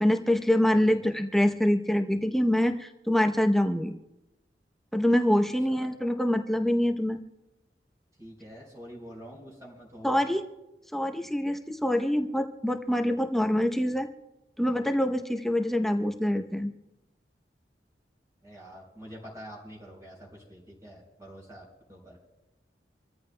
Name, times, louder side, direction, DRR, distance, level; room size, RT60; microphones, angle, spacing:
voice 1, 0.0-3.9 4.9-7.2 10.0-10.4 10.9-14.1 14.6-16.7, left 1 dB, ahead, 4 dB, 0.7 m, -25 dB
voice 2, 8.2-10.2 18.4-22.2, equal, 20° right, -2 dB, 3.8 m, -46 dB
27.0 x 14.5 x 2.2 m, 0.98 s
head